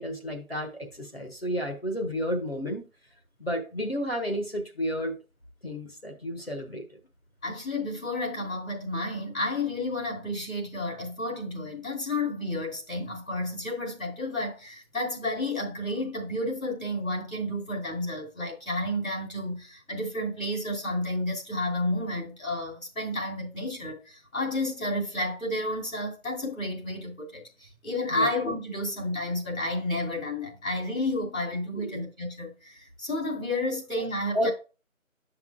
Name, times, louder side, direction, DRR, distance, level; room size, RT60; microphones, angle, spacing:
voice 1, 0.0-2.8 3.4-5.2 5.6-6.9 28.1-28.3 31.7-32.0 34.3-34.5, equal, 45° left, 1.1 m, -31 dB
voice 2, 7.4-34.5, left 1 dB, 75° left, 2.9 m, -31 dB
8.7 x 5.9 x 2.3 m
figure-of-eight pair, 175°, 42 cm